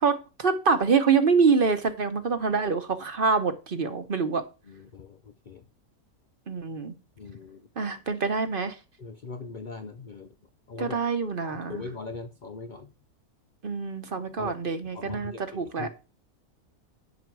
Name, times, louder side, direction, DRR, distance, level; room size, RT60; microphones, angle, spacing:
voice 1, 0.0-4.4 6.5-6.9 7.8-8.7 10.8-11.8 13.6-15.9, right 5 dB, 45° right, 9 dB, 0.9 m, -25 dB
voice 2, 4.7-5.2 5.5-5.6 7.2-7.6 9.0-10.3 10.7-11.0 11.4-12.9 14.4-14.5 14.9-15.4 15.8-15.9, left 4 dB, 90° left, 8 dB, 0.4 m, -40 dB
9.3 x 5.7 x 4.6 m, 0.32 s
omnidirectional pair, 1.6 m